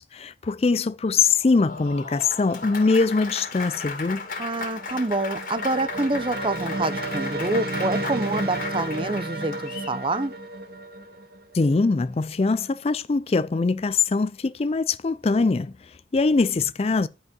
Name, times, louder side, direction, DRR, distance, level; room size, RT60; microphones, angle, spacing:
voice 1, 0.1-4.3 11.5-17.1, left 4 dB, 35° left, 0.4 m, -22 dB
Applause, 1.2-10.0, left 4 dB, 50° left, 2.3 m, -36 dB
sound 1, 4.2-12.0, right 2 dB, 55° right, 1.6 m, -32 dB
voice 2, 4.4-10.3, right 2 dB, 30° right, 0.8 m, -27 dB
11.0 x 5.3 x 5.3 m
head